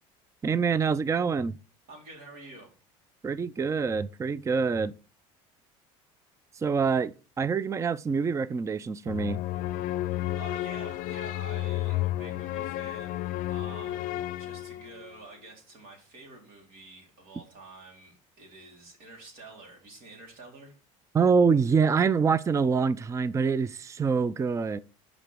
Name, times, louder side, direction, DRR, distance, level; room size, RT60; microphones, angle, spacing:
voice 1, 0.4-1.6 3.2-4.9 6.6-9.4 21.1-24.8, right 5 dB, 20° right, 0.4 m, -25 dB
voice 2, 1.9-2.7 10.3-13.2 13.5-20.8, right 2 dB, 65° right, 3.8 m, -48 dB
sound 1, 9.1-15.1, left 14 dB, 60° left, 0.5 m, -32 dB
6.2 x 5.2 x 6.2 m
supercardioid pair, 90°, 16 cm